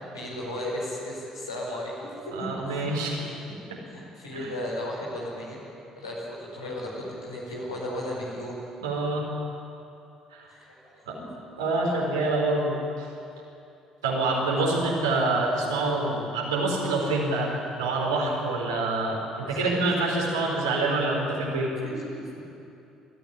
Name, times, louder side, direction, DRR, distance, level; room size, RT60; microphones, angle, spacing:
voice 1, 0.1-2.9 3.2-3.6 3.9-5.6 5.9-8.6 10.5-11.3 14.6-14.8 19.5-19.6 20.1-20.2 21.8-22.3, left 1 dB, 85° left, -5 dB, 5.1 m, -35 dB
voice 2, 2.4-3.2 3.7-3.8 4.3-4.5 8.8-9.3 10.3-10.5 11.1-11.2 11.6-13.1 14.0-17.5 17.8-21.7, right 2 dB, 80° right, -2 dB, 4.2 m, -26 dB
21.5 x 14.0 x 9.9 m, 2.7 s
figure-of-eight pair, 50°, 2 cm